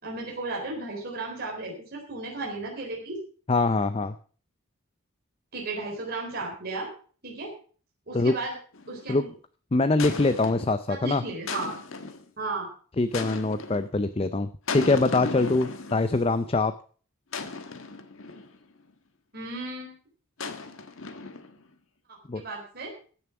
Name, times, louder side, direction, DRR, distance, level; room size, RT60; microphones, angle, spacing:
voice 1, 0.0-3.2 5.5-6.9 7.2-7.5 8.1-8.6 8.9-9.3 10.9-11.8 12.4-12.7 19.3-20.0 22.3-22.9, right 3 dB, 45° right, -1 dB, 4.0 m, -34 dB
voice 2, 3.5-4.2 8.1-8.3 9.1-9.2 9.7-11.2 13.0-16.7 22.3-22.4, left 3 dB, 25° left, 11 dB, 0.5 m, -24 dB
sound 1, 8.7-9.1 10.0-10.8 11.5-12.3 13.1-13.9 14.7-16.3 17.3-18.6 20.4-21.6, left 4 dB, 70° left, 1.4 m, -36 dB
16.0 x 7.2 x 5.9 m, 0.42 s
head